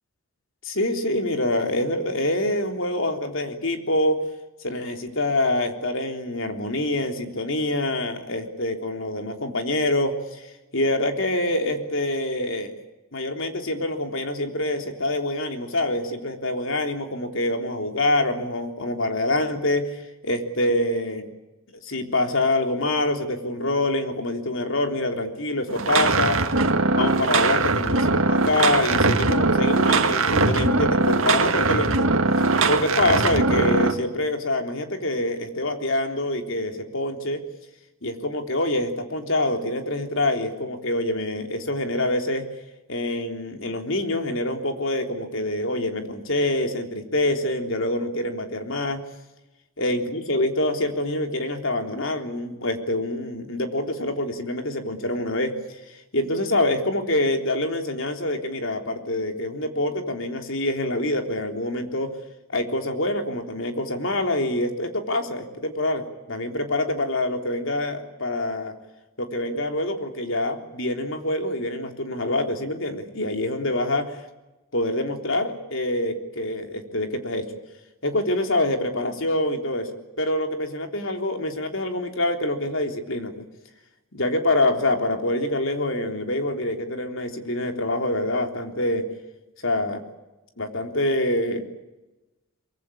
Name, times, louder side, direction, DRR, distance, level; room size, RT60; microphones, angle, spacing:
voice 1, 0.6-4.2 4.6-10.5 10.7-12.7 13.1-21.3 21.8-26.5 27.0-32.1 32.7-37.4 38.0-42.5 42.9-49.0 49.8-55.8 56.1-62.1 62.5-68.7 69.2-74.1 74.7-77.5 78.0-79.9 80.2-83.4 84.1-89.0 89.6-90.0 90.6-91.6, left 1 dB, 65° left, 5 dB, 3.6 m, -25 dB
sound 1, 25.7-33.9, right 3 dB, 70° right, 2.0 m, -21 dB
24.0 x 23.5 x 8.6 m, 1.0 s
head